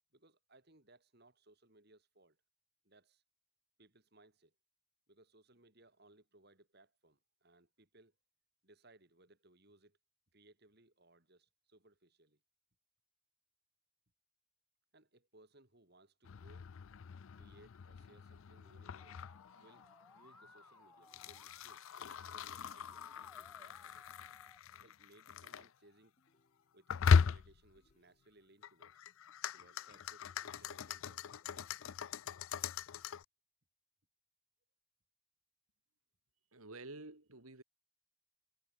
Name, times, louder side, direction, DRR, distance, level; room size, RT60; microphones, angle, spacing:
voice 1, 0.1-2.4 2.8-3.2 3.8-4.5 5.1-8.1 8.6-10.0 10.3-12.4 14.9-16.8 17.3-19.2 19.6-24.1 24.8-26.2 26.7-29.0 29.5-31.9, right 2 dB, 45° right, 3.2 m, -66 dB
sound 1, 16.3-25.7 26.9-27.8 28.6-33.3, left 6 dB, 65° left, 0.4 m, -38 dB
Musical instrument, 19.0-24.6, left 1 dB, 5° left, 1.0 m, -62 dB
sound 2, 21.0-22.0 23.1-24.1 26.2-27.2 27.8-28.7 29.6-30.6 31.2-32.2, left 1 dB, 35° left, 7.2 m, -80 dB
voice 2, 36.5-37.6, right 2 dB, 80° right, 3.3 m, -50 dB
head